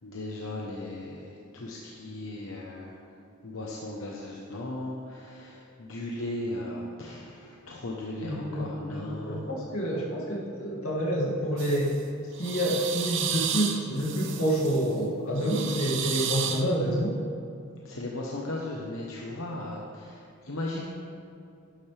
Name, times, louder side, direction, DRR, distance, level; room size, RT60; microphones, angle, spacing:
voice 1, 0.0-3.0 3.4-9.5 17.8-20.8, left 1 dB, 70° left, -3 dB, 1.0 m, -37 dB
voice 2, 8.2-12.0 12.4-17.2, equal, 90° left, -4 dB, 2.4 m, -28 dB
sound 1, 11.6-11.9 12.3-14.9 15.4-16.6, right 8 dB, 60° right, 0.8 m, -32 dB
11.5 x 11.5 x 3.4 m, 2.5 s
head